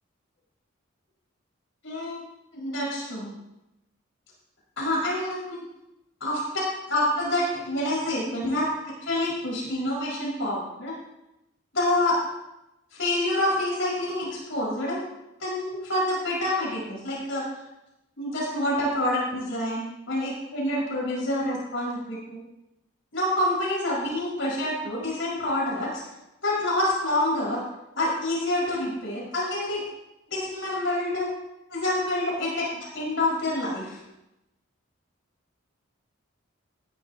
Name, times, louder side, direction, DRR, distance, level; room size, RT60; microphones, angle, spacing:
voice 1, 1.8-2.2 2.5-3.3 4.8-5.6 6.2-6.6 6.9-10.9 11.7-12.2 12.9-15.0 15.4-17.4 18.2-22.4 23.1-26.0 26.4-27.6 28.0-29.8 30.3-31.3 31.7-34.0, left 1 dB, 65° left, -5 dB, 5.1 m, -27 dB
16.0 x 11.0 x 2.8 m, 0.93 s
head